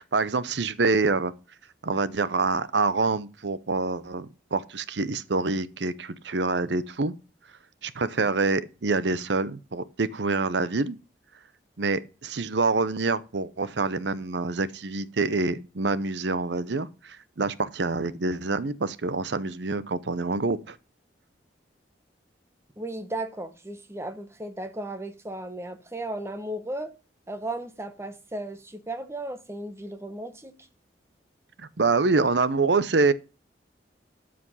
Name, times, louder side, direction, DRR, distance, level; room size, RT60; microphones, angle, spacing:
voice 1, 0.0-1.3 1.8-7.1 7.8-11.0 11.8-20.8 31.6-33.1, right 3 dB, 70° right, 0.8 m, -26 dB
voice 2, 22.8-26.9 27.3-30.6, right 1 dB, 15° right, 1.2 m, -35 dB
12.5 x 5.2 x 5.6 m
head